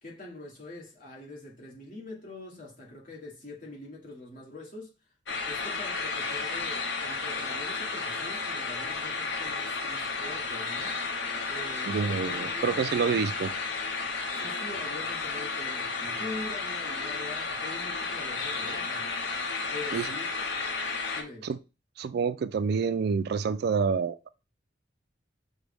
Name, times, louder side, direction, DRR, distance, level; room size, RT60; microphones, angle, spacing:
voice 1, 0.0-4.9 5.4-11.0 11.5-12.9 14.4-19.1 19.7-20.5 21.1-21.5, left 2 dB, 50° left, 1.5 m, -44 dB
sound 1, 5.3-21.2, left 4 dB, 75° left, 0.9 m, -33 dB
voice 2, 11.9-13.5 19.9-20.1 21.4-21.6 22.0-24.3, right 5 dB, 60° right, 0.3 m, -28 dB
6.0 x 2.2 x 3.4 m
head